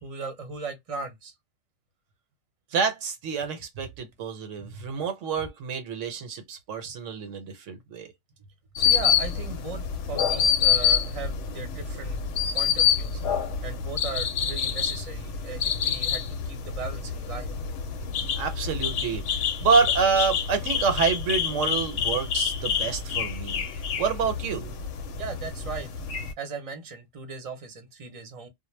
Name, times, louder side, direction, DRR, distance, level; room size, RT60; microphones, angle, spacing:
voice 1, 0.0-1.3 4.6-4.8 8.7-12.2 12.5-13.2 13.6-17.5 25.1-25.9 26.4-28.5, right 5 dB, 35° right, 0.7 m, -38 dB
voice 2, 2.7-8.1 18.3-24.7, right 5 dB, 80° right, 1.1 m, -27 dB
sound 1, 8.8-26.3, left 7 dB, 75° left, 0.9 m, -27 dB
2.2 x 2.1 x 3.1 m
omnidirectional pair, 1.3 m